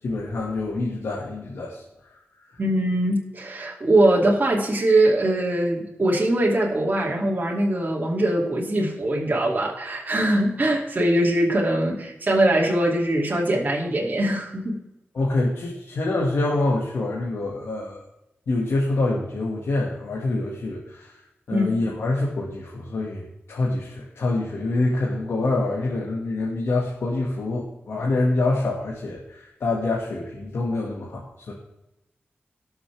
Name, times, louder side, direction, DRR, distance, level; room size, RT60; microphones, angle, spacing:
voice 1, 0.0-2.1 2.5-2.6 15.1-18.0 18.5-21.2 21.5-31.5, left 2 dB, 90° left, -3 dB, 1.8 m, -26 dB
voice 2, 2.6-14.8 21.5-21.7, right 1 dB, 40° right, -3 dB, 2.5 m, -22 dB
18.5 x 7.0 x 3.4 m, 0.92 s
wide cardioid pair, 90°, 4 cm